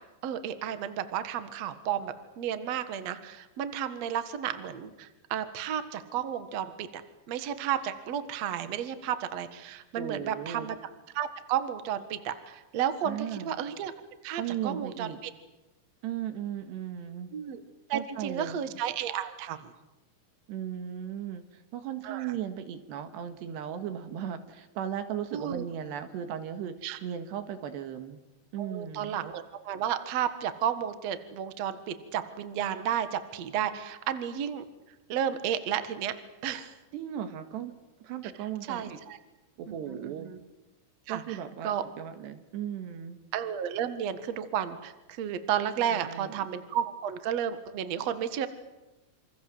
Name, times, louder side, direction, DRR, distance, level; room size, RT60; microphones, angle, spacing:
voice 1, 0.2-7.0 7.3-10.8 11.1-13.9 14.2-15.3 17.3-17.6 17.9-19.7 22.0-22.3 25.3-25.6 26.8-27.0 28.6-34.6 35.1-36.2 36.4-36.7 38.7-39.2 39.7-40.4 41.1-41.4 41.6-41.8 43.3-48.5, right 9 dB, 80° right, 11 dB, 1.4 m, -32 dB
voice 2, 10.0-10.7 13.0-13.6 14.3-15.2 16.0-17.3 17.9-18.6 20.5-28.2 28.5-29.2 36.9-37.7 38.0-39.0 39.6-40.3 41.1-43.2 45.9-46.4, right 9 dB, 65° right, 9 dB, 3.5 m, -36 dB
27.5 x 26.5 x 7.8 m, 1.0 s
omnidirectional pair, 5.8 m